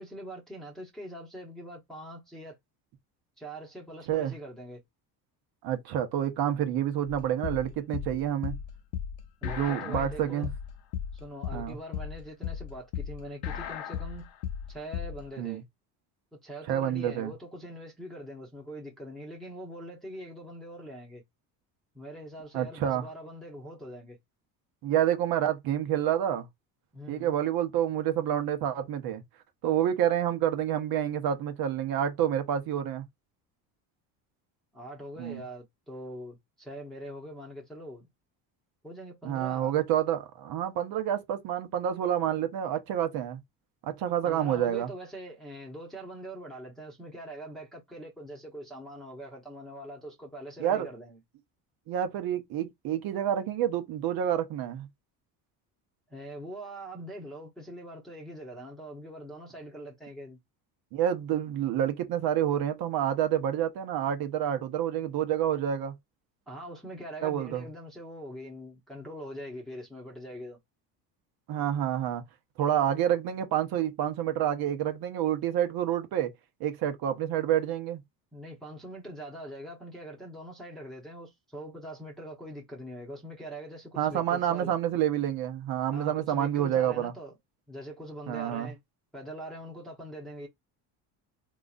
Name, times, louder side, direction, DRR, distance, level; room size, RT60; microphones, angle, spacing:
voice 1, 0.0-2.6 3.4-4.8 9.4-10.5 11.1-14.3 14.7-15.6 16.3-21.2 21.9-24.2 26.9-27.3 34.7-38.1 38.8-39.7 44.2-51.2 56.1-60.4 66.5-70.6 78.3-84.7 85.9-87.3 87.7-88.8 89.1-90.5, right 1 dB, ahead, 0.9 m, -43 dB
voice 2, 5.6-8.5 9.4-10.5 11.5-11.8 15.4-15.6 16.7-17.3 22.5-23.1 24.8-26.5 27.1-29.2 29.6-33.1 35.2-35.4 39.2-43.4 43.8-44.9 50.6-50.9 51.9-54.9 60.9-65.9 67.2-67.7 71.5-72.2 72.6-76.3 76.6-78.0 84.0-87.1 88.3-88.7, right 10 dB, 60° right, 0.9 m, -28 dB
sound 1, 7.1-15.2, left 9 dB, 75° left, 0.8 m, -35 dB
3.8 x 3.0 x 2.4 m
cardioid pair, 125°, 40 cm